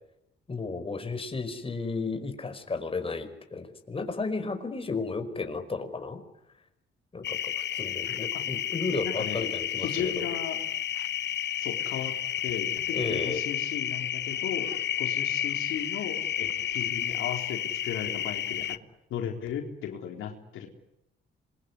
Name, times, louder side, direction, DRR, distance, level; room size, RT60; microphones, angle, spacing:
voice 1, 0.5-6.2 7.1-10.2 12.9-13.4, left 4 dB, 30° left, 7 dB, 5.1 m, -33 dB
sound 1, 7.2-18.8, left 10 dB, 60° left, 1.0 m, -31 dB
voice 2, 9.0-9.5 9.8-10.6 11.6-12.1 12.4-14.7 15.0-18.7 19.1-20.7, left 8 dB, 85° left, 3 dB, 3.8 m, -36 dB
26.5 x 22.5 x 9.8 m, 0.87 s
cardioid pair, 90°, 20 cm